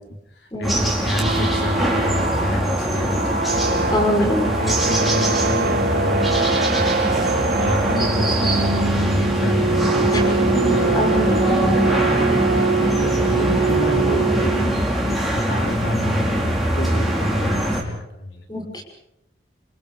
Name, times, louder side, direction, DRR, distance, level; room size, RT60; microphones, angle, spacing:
voice 1, 0.4-3.9 4.2-18.7, left 1 dB, 75° left, 2 dB, 4.2 m, -28 dB
sound 1, 0.6-17.8, equal, ahead, 5.3 m, -22 dB
sound 2, 1.2-14.9, right 4 dB, 55° right, 1.0 m, -24 dB
voice 2, 3.9-4.5 10.1-10.2 10.9-11.3 18.5-18.8, left 1 dB, 25° left, 2 dB, 6.2 m, -23 dB
28.0 x 27.5 x 5.1 m, 0.82 s
head